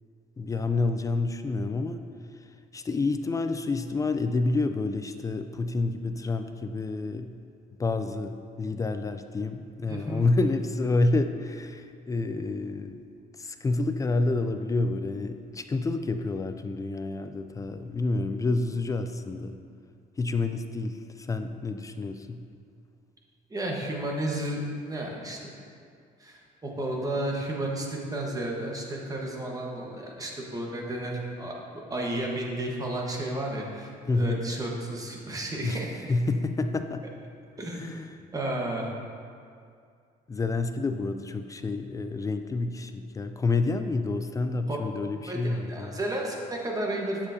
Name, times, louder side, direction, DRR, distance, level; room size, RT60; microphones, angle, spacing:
voice 1, 0.4-2.0 2.7-7.3 7.8-13.0 13.4-19.6 20.2-22.4 34.1-34.5 35.6-35.8 36.1-37.1 37.8-38.1 40.3-46.0, left 3 dB, 20° left, 8 dB, 0.3 m, -28 dB
voice 2, 9.9-10.2 23.5-25.5 26.2-31.6 31.9-36.1 37.6-37.8 38.3-38.9 44.7-44.8 45.3-47.3, right 1 dB, 20° right, -1 dB, 1.2 m, -32 dB
8.7 x 7.1 x 2.7 m, 2.3 s
cardioid pair, 110°, 17 cm